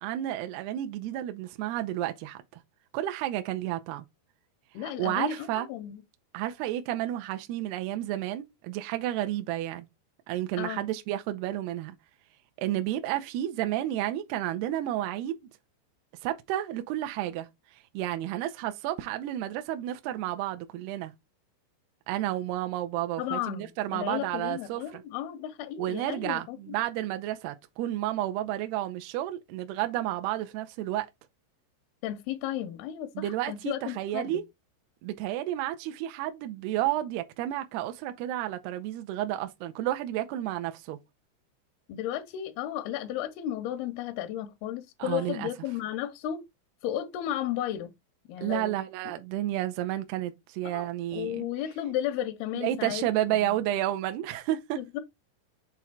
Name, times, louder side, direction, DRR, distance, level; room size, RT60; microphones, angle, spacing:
voice 1, 0.0-2.4 2.9-4.1 4.8-5.7 6.3-9.9 10.3-12.0 12.6-15.4 16.2-17.5 17.9-21.1 22.1-25.0 25.8-31.1 33.2-34.4 35.0-41.0 45.0-45.5 48.4-51.5 52.5-54.8, right 13 dB, 80° right, 2.4 m, -31 dB
voice 2, 4.7-6.0 10.6-10.8 23.2-26.7 32.0-34.4 41.9-46.4 46.8-47.9 48.3-48.8 50.6-50.9 51.1-53.6 54.8-55.0, left 11 dB, 80° left, 2.2 m, -34 dB
7.0 x 3.0 x 4.5 m
omnidirectional pair, 5.3 m